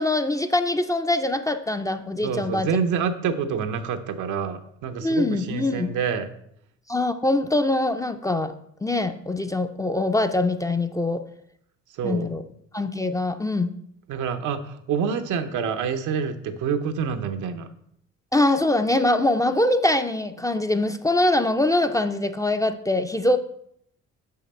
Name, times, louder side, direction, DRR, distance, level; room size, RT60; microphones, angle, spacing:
voice 1, 0.0-2.7 5.0-5.9 6.9-8.5 8.8-11.2 12.0-12.4 12.7-13.7 18.3-23.4, left 2 dB, 10° left, 8 dB, 0.4 m, -23 dB
voice 2, 2.2-6.3 12.0-12.3 14.1-17.7, right 6 dB, 80° right, 8 dB, 0.7 m, -27 dB
5.9 x 5.6 x 4.2 m, 0.71 s
cardioid pair, 90°, 30 cm